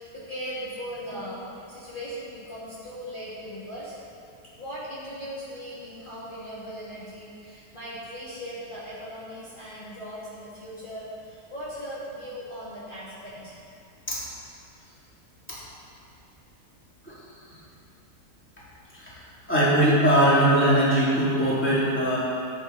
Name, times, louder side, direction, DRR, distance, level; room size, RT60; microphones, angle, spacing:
voice 1, 0.0-1.4 1.7-4.0 4.6-13.5, equal, 30° left, -11 dB, 3.0 m, -38 dB
voice 2, 19.5-22.2, right 1 dB, 5° left, -9 dB, 3.3 m, -20 dB
16.5 x 9.0 x 4.3 m, 2.5 s
omnidirectional pair, 1.8 m